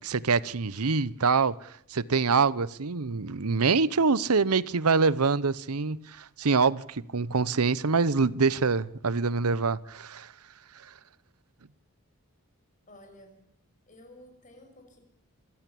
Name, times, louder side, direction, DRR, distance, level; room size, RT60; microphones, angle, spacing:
voice 1, 0.0-10.3 10.7-10.9, right 4 dB, 85° right, 0.9 m, -25 dB
voice 2, 12.9-13.4 13.9-15.0, left 1 dB, 35° left, 6.2 m, -53 dB
27.0 x 15.5 x 8.5 m
head